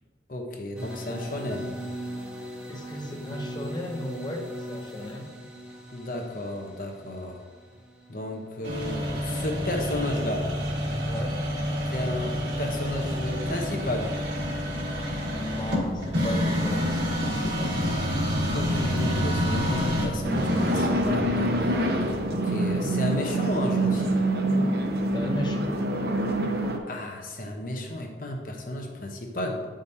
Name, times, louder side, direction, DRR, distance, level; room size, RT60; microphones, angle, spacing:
voice 1, 0.3-1.7 5.9-7.4 8.1-10.5 11.9-14.1 18.5-21.9 22.3-24.2 26.9-29.6, left 1 dB, 50° left, 2 dB, 0.9 m, -33 dB
sound 1, 0.7-9.5, equal, 5° right, 1.0 m, -40 dB
voice 2, 2.7-5.3 11.0-11.3 15.3-18.0 25.1-25.7, equal, 25° left, 2 dB, 0.7 m, -35 dB
sound 2, 8.6-22.2, equal, 80° right, 1.5 m, -28 dB
sound 3, 20.2-26.8, right 1 dB, 60° right, 0.7 m, -25 dB
9.3 x 5.1 x 2.8 m, 1.5 s
head